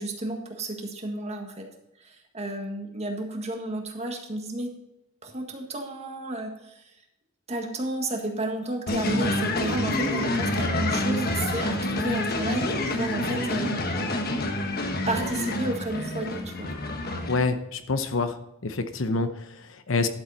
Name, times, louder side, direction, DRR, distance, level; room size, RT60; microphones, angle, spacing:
voice 1, 0.0-1.7 2.0-4.7 5.2-6.9 7.5-13.8 15.1-16.7, right 1 dB, 30° right, 3 dB, 1.6 m, -32 dB
sound 1, 8.9-17.4, left 1 dB, 50° left, 1.2 m, -27 dB
voice 2, 17.3-18.4 18.6-20.1, left 3 dB, 70° left, 9 dB, 0.9 m, -27 dB
12.0 x 7.4 x 4.1 m, 0.89 s
head